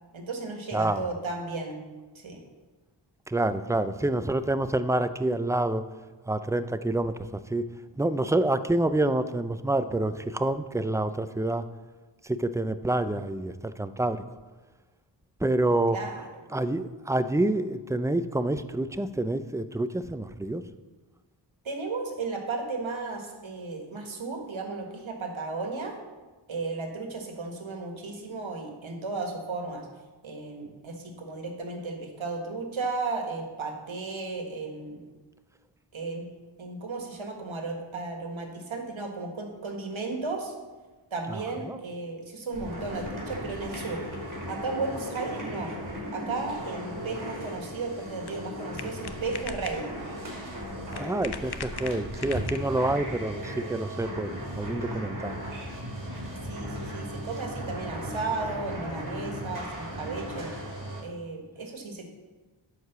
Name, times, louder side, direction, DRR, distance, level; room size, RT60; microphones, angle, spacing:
voice 1, 0.1-1.8 2.1-2.4 15.9-16.3 21.6-25.9 26.5-29.9 30.2-35.1 35.9-36.3 36.6-40.5 41.1-44.0 44.5-45.7 46.1-49.9 56.4-60.5 61.0-62.1, right 3 dB, 80° right, 3 dB, 1.6 m, -34 dB
voice 2, 0.7-1.1 3.3-5.8 6.3-7.7 8.0-11.6 12.2-14.2 15.4-16.0 16.5-20.6 41.3-41.4 41.7-41.8 51.0-55.4, right 2 dB, 5° right, 11 dB, 0.4 m, -27 dB
sound 1, 42.5-61.0, equal, 40° right, 3.4 m, -37 dB
sound 2, 47.5-53.0, left 6 dB, 55° left, 0.8 m, -42 dB
10.5 x 4.8 x 6.7 m, 1.3 s
wide cardioid pair, 60°, 46 cm